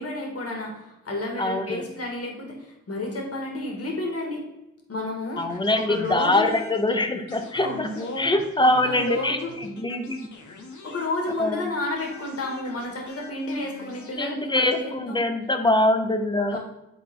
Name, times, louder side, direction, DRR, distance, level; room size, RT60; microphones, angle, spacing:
voice 1, 0.0-4.4 4.9-5.4 5.8-6.5 7.6-8.3 8.6-9.5 10.8-15.2 16.5-16.6, left 2 dB, 50° left, 0 dB, 2.2 m, -31 dB
voice 2, 1.4-1.8 5.4-10.3 11.4-11.6 14.2-16.6, left 1 dB, 15° left, 6 dB, 0.9 m, -24 dB
sound 1, 5.4-11.6 12.0-14.2, left 3 dB, 70° left, 1.2 m, -46 dB
9.8 x 3.9 x 3.8 m, 0.96 s
cardioid pair, 70°, 31 cm